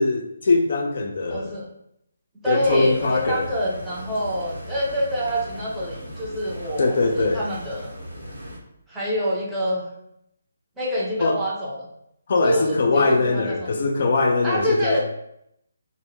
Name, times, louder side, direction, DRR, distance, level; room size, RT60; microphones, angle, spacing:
voice 1, 0.0-1.5 2.5-3.5 6.8-7.4 11.2-11.4 12.3-15.1, left 3 dB, 55° left, 3 dB, 0.3 m, -21 dB
voice 2, 1.3-1.7 2.4-7.9 8.9-9.9 10.8-11.9 12.4-14.0 14.4-15.1, equal, 10° right, -7 dB, 0.7 m, -26 dB
sound 1, 2.6-8.6, equal, 90° right, 0.9 m, -38 dB
2.1 x 2.0 x 3.0 m, 0.76 s
figure-of-eight pair, 145°, 0 cm